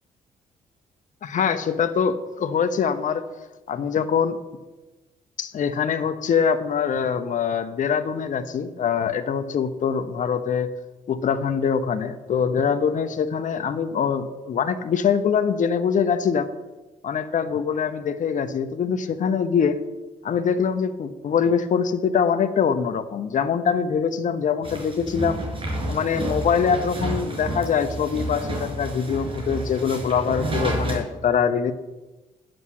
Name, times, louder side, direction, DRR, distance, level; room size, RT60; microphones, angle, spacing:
voice 1, 1.2-3.2 3.7-4.4 5.4-10.7 11.1-16.5 17.0-19.8 20.2-25.4 25.9-31.7, left 7 dB, 55° left, 10 dB, 0.9 m, -23 dB
sound 1, 24.6-31.0, right 1 dB, 35° right, 5.1 m, -30 dB
9.6 x 7.9 x 7.6 m, 1.1 s
supercardioid pair, 60°, 16 cm